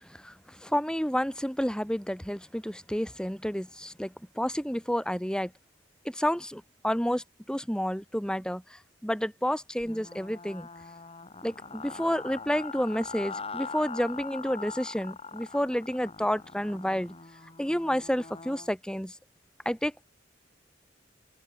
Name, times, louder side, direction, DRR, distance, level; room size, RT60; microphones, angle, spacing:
voice 1, 0.1-5.5 6.0-10.7 11.4-17.1 17.6-19.1 19.6-20.0, equal, 5° left, 6.8 m, -30 dB
sound 1, 9.8-18.7, left 4 dB, 35° left, 5.2 m, -42 dB
open air
head